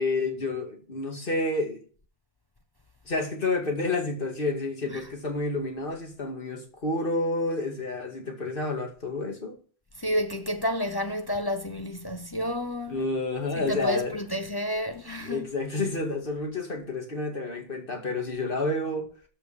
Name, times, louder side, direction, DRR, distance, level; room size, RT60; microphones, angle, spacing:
voice 1, 0.0-1.8 3.1-9.6 12.9-14.2 15.2-19.1, left 2 dB, 50° left, 2.4 m, -29 dB
voice 2, 10.0-13.0 13.6-15.5, equal, 25° left, 0.7 m, -30 dB
13.5 x 5.6 x 5.6 m
omnidirectional pair, 1.2 m